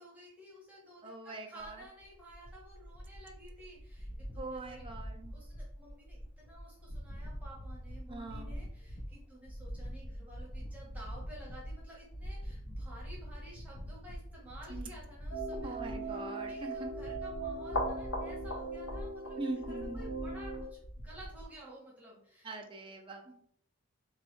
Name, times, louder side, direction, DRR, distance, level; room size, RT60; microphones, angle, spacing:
voice 1, 0.0-4.9 5.3-15.8 16.1-22.6 23.2-23.3, equal, 5° right, -4 dB, 0.9 m, -53 dB
voice 2, 1.0-1.8 4.4-5.3 8.1-8.5 14.7-14.9 15.6-16.9 19.4-20.0 22.4-23.3, right 2 dB, 25° right, 3 dB, 0.4 m, -42 dB
sound 1, 1.6-21.4, equal, 25° left, 0.5 m, -44 dB
sound 2, 15.3-20.6, right 1 dB, 70° left, 0.8 m, -38 dB
3.8 x 3.1 x 3.1 m, 0.66 s
head